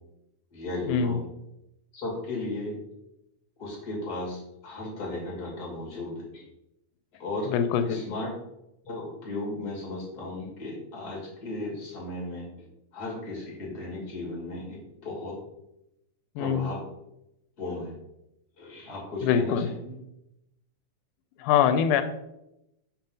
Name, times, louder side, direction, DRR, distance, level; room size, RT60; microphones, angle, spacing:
voice 1, 0.5-1.3 1.9-2.7 3.6-6.4 7.2-7.5 7.8-8.3 8.8-12.5 12.9-15.4 16.4-16.8 17.6-17.9 18.6-19.9, left 2 dB, 30° left, -3 dB, 2.7 m, -35 dB
voice 2, 7.5-8.0 16.4-16.7 19.2-19.7 21.4-22.0, left 8 dB, 90° left, 10 dB, 2.1 m, -23 dB
5.9 x 4.4 x 5.3 m, 0.86 s
omnidirectional pair, 3.5 m